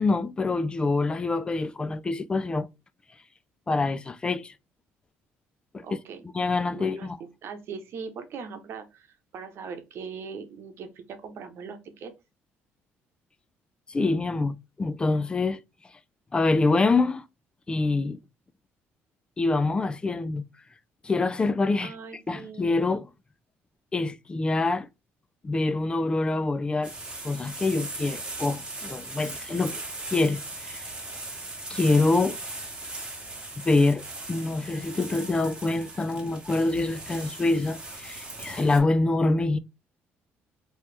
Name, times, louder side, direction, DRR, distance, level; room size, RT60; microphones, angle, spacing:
voice 1, 0.0-2.7 3.7-4.5 5.7-5.8 6.3-7.2 13.9-15.6 16.3-17.2 17.7-18.2 19.4-20.4 21.0-21.9 22.3-23.1 23.9-24.9 25.4-26.9 27.2-29.8 30.1-30.9 31.7-32.4 33.6-34.0 34.3-39.6, left 3 dB, 20° left, 0.3 m, -25 dB
voice 2, 5.8-6.3 6.7-12.1 21.8-22.7, right 5 dB, 60° right, 0.9 m, -40 dB
sound 1, 26.8-38.8, right 2 dB, 20° right, 1.6 m, -39 dB
3.1 x 3.0 x 3.3 m
cardioid pair, 110°, 5 cm